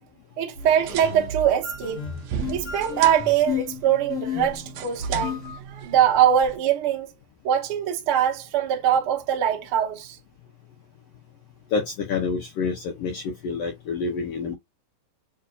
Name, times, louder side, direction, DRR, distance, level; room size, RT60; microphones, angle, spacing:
voice 1, 0.4-2.0 2.5-7.1 7.4-10.2, right 9 dB, 65° right, 1.3 m, -22 dB
sound 1, 0.6-5.6, left 5 dB, 60° left, 1.6 m, -33 dB
sound 2, 0.6-6.6, right 8 dB, 85° right, 1.4 m, -38 dB
voice 2, 11.7-14.5, left 4 dB, 80° left, 1.4 m, -28 dB
6.7 x 2.6 x 2.4 m
omnidirectional pair, 3.9 m